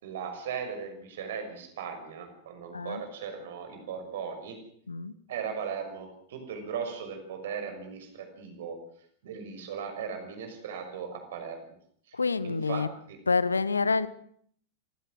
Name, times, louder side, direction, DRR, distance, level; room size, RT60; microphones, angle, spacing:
voice 1, 0.0-4.6 5.3-8.8 9.2-11.7 12.1-12.2 12.4-13.2, right 6 dB, 60° right, 6 dB, 6.2 m, -38 dB
voice 2, 12.1-12.9 13.3-14.1, left 4 dB, 75° left, 19 dB, 1.0 m, -27 dB
26.5 x 16.0 x 7.6 m, 0.64 s
figure-of-eight pair, 90°, 0 cm